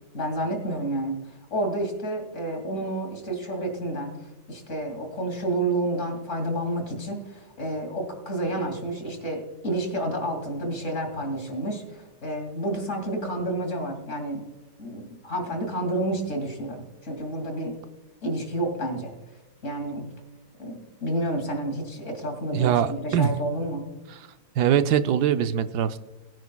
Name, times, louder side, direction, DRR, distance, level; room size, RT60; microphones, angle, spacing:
voice 1, 0.1-1.2 1.5-4.1 4.5-14.4 14.8-17.7 18.2-19.1 19.6-20.0 20.6-23.8, right 1 dB, 45° left, 3 dB, 2.7 m, -30 dB
voice 2, 22.5-23.3 24.6-26.0, right 9 dB, 80° right, 11 dB, 1.1 m, -22 dB
21.0 x 9.5 x 2.3 m, 1.1 s
omnidirectional pair, 1.8 m